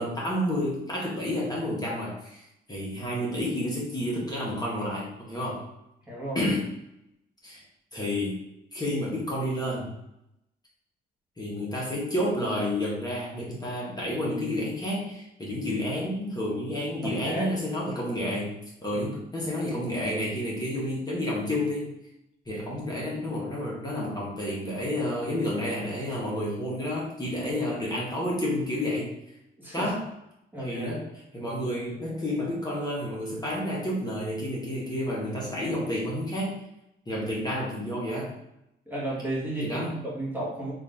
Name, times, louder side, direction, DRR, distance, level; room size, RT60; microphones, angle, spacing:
voice 1, 0.0-2.4 2.7-5.7 6.3-6.7 7.4-7.6 7.9-8.4 8.7-9.9 11.4-21.9 22.5-29.1 29.7-30.0 30.6-31.1 31.3-36.6 37.1-38.3 39.6-39.9, left 1 dB, 20° left, -5 dB, 1.3 m, -30 dB
voice 2, 6.1-6.5 16.9-17.5 18.9-19.0 29.6-29.9 30.5-31.1 38.9-40.7, right 1 dB, 10° right, -6 dB, 1.3 m, -33 dB
3.7 x 2.7 x 3.5 m, 0.84 s
cardioid pair, 90°, 20 cm